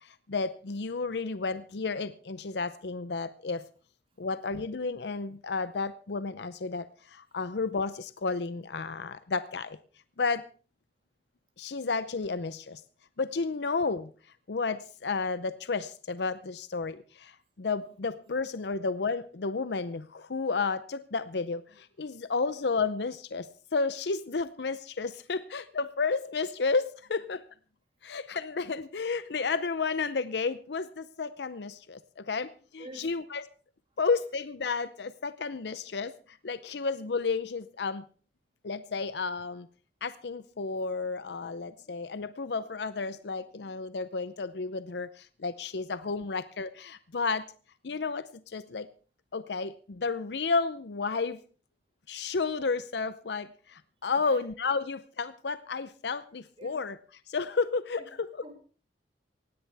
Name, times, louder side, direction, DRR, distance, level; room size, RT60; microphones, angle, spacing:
voice 1, 0.0-3.6 4.2-9.8 10.2-10.4 11.6-12.8 13.2-14.1 14.5-27.4 28.0-33.4 34.0-38.0 38.6-39.7 40.0-47.4 47.8-48.9 49.3-51.4 52.1-57.0 57.3-58.4, left 4 dB, 70° left, 14 dB, 0.6 m, -32 dB
voice 2, 32.8-33.2 54.1-54.4 56.6-56.8 58.2-58.5, right 1 dB, 30° right, 4 dB, 3.2 m, -47 dB
18.5 x 16.5 x 3.4 m, 0.38 s
head